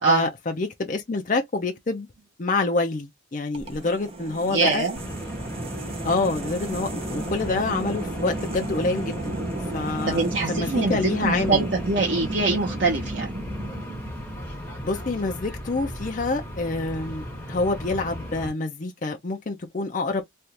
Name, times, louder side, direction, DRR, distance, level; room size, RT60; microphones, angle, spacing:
voice 1, 0.0-2.1 2.4-4.9 6.0-9.4 9.7-11.6 14.8-20.2, left 3 dB, 40° left, 0.5 m, -27 dB
sound 1, 3.5-14.6, right 2 dB, 30° right, 0.7 m, -34 dB
voice 2, 4.5-5.0 10.0-13.3, right 3 dB, 65° right, 0.9 m, -24 dB
sound 2, 5.0-18.5, equal, 10° left, 1.4 m, -36 dB
3.3 x 2.4 x 2.8 m
head